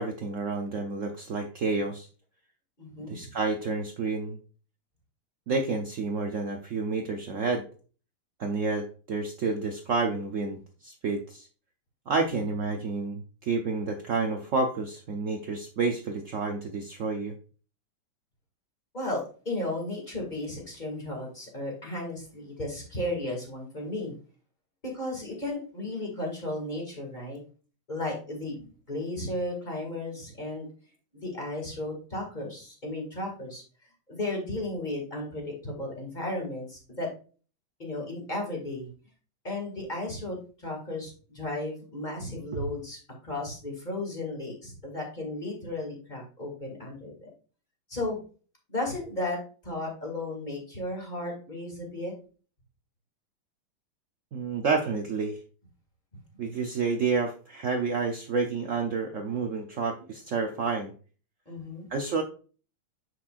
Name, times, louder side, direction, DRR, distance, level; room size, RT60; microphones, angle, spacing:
voice 1, 0.0-2.1 3.1-4.4 5.5-7.6 8.4-11.5 12.1-17.3 42.5-42.6 54.3-55.4 56.4-60.9 61.9-62.2, right 4 dB, 75° right, 3 dB, 0.7 m, -29 dB
voice 2, 2.8-3.3 12.3-12.5 18.9-24.1 24.8-27.4 27.9-30.7 31.1-33.6 34.1-37.1 37.8-38.9 39.4-47.3 47.9-48.2 48.7-52.1 61.5-61.9, left 1 dB, 20° left, 0 dB, 2.2 m, -34 dB
7.4 x 6.2 x 2.5 m, 0.38 s
omnidirectional pair, 2.3 m